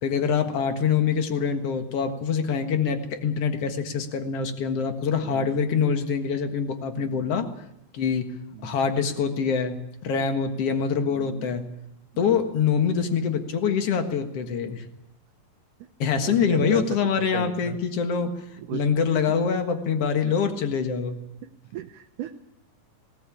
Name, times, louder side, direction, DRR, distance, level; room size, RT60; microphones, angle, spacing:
voice 1, 0.0-7.5 7.9-8.3 8.6-9.7 10.0-11.6 12.2-14.8 16.0-21.2, left 6 dB, 50° left, 7 dB, 2.2 m, -25 dB
voice 2, 5.2-5.6 7.1-7.4 8.5-8.8 11.0-11.5 12.1-12.5 16.2-16.9 17.2-17.8 18.2-18.9 20.3-20.4 21.7-22.4, right 11 dB, 70° right, 5 dB, 2.2 m, -37 dB
18.0 x 18.0 x 8.5 m, 0.81 s
omnidirectional pair, 4.0 m